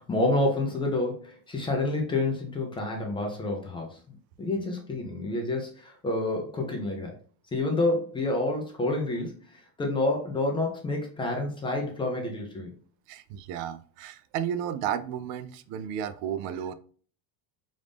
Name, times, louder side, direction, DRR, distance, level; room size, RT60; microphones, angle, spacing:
voice 1, 0.0-7.1 7.5-12.7, left 2 dB, 10° left, 0.4 m, -29 dB
voice 2, 13.1-16.7, right 9 dB, 65° right, 0.5 m, -33 dB
5.0 x 2.6 x 3.4 m
cardioid pair, 165°, 41 cm